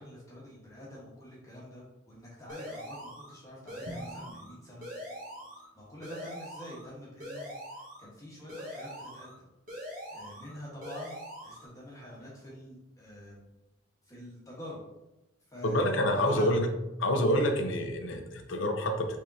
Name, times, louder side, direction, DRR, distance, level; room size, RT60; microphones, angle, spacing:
voice 1, 0.0-4.9 5.7-7.5 8.0-9.4 10.1-13.5 14.1-14.8 15.5-15.8 16.2-16.5, left 1 dB, 15° left, -6 dB, 1.4 m, -46 dB
sound 1, 2.5-3.3 3.7-4.5 4.8-5.7 6.0-6.9 7.2-8.1 8.5-9.3 9.7-10.5 10.8-11.7, equal, 40° right, 1.5 m, -43 dB
Drum, 3.9-5.9, right 1 dB, 85° right, 0.7 m, -48 dB
voice 2, 15.6-16.7 17.0-19.2, left 1 dB, 70° left, 5 dB, 0.7 m, -27 dB
5.3 x 3.6 x 2.8 m, 0.95 s
head